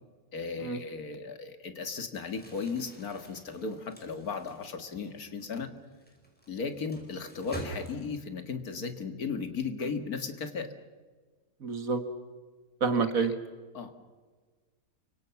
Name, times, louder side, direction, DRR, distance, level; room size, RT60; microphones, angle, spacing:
voice 1, 0.3-5.7 6.5-10.7 13.0-13.3 13.7-14.0, left 5 dB, 80° left, 8 dB, 2.3 m, -36 dB
Crumpling crinkling, 2.3-8.4, right 1 dB, 5° left, 5.5 m, -47 dB
voice 2, 11.6-12.0 12.8-13.3, right 5 dB, 65° right, 9 dB, 2.2 m, -28 dB
29.0 x 25.0 x 6.0 m, 1.4 s
omnidirectional pair, 1.6 m